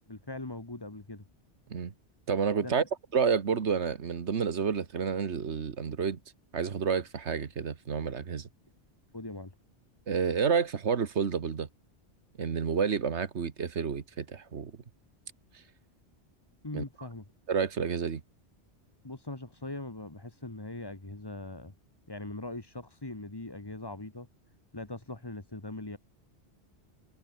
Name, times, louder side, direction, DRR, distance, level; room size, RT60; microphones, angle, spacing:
voice 1, 0.1-1.2 2.6-2.7 9.1-9.6 16.6-17.2 19.0-21.7 22.1-24.3 24.7-26.0, left 2 dB, 20° left, 1.7 m, -41 dB
voice 2, 2.3-2.8 3.1-6.2 6.5-8.5 10.1-11.7 12.4-14.7 16.7-16.8 17.5-18.2, right 6 dB, 80° right, 1.7 m, -29 dB
omnidirectional pair, 1.1 m